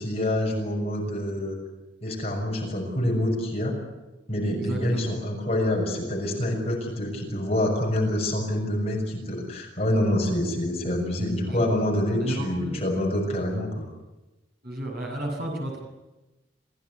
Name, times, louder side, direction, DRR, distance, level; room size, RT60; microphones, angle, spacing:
voice 1, 0.0-1.5 2.0-3.7 4.3-13.9, left 1 dB, 30° left, -1 dB, 6.5 m, -26 dB
voice 2, 4.4-5.1 11.4-11.7 12.2-12.8 14.6-15.8, right 1 dB, 50° right, 0 dB, 7.6 m, -32 dB
27.5 x 16.5 x 9.7 m, 1.0 s
head